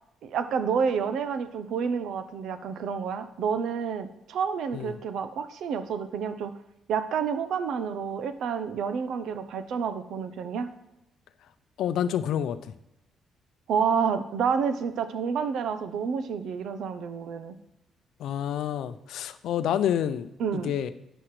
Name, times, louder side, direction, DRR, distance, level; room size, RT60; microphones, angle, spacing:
voice 1, 0.2-6.5 6.9-10.7 13.7-17.6 20.4-20.7, right 6 dB, 75° right, 11 dB, 0.7 m, -29 dB
voice 2, 11.8-12.6 18.2-20.9, left 10 dB, 80° left, 12 dB, 0.5 m, -28 dB
12.0 x 9.1 x 3.2 m, 0.89 s
cardioid pair, 90°, 0 cm